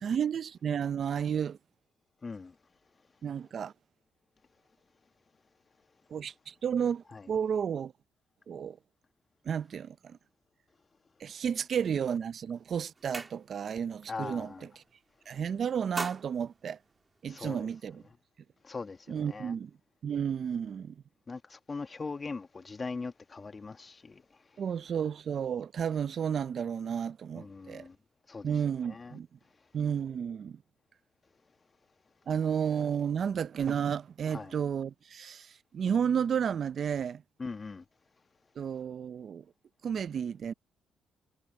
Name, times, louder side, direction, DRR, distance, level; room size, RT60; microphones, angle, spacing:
voice 1, 0.0-1.6 3.2-3.7 6.1-7.9 8.5-8.8 9.5-10.2 11.2-14.5 15.3-16.8 17.2-18.0 19.1-19.7 20.0-20.9 24.6-27.8 28.4-29.3 29.7-30.6 32.3-37.2 38.6-39.4 39.8-40.5, right 7 dB, 55° right, 0.6 m, -32 dB
voice 2, 2.2-2.5 7.1-7.3 14.1-14.7 17.3-17.7 18.6-19.5 21.3-24.2 27.3-27.9 28.3-28.5 28.8-29.2 34.3-34.5 37.4-37.8, left 4 dB, 30° left, 1.5 m, -40 dB
sound 1, 12.1-12.4 12.7-13.8 14.2-14.5 14.8-15.3 15.7-17.5, right 3 dB, 25° right, 3.3 m, -42 dB
cardioid pair, 90°, 0 cm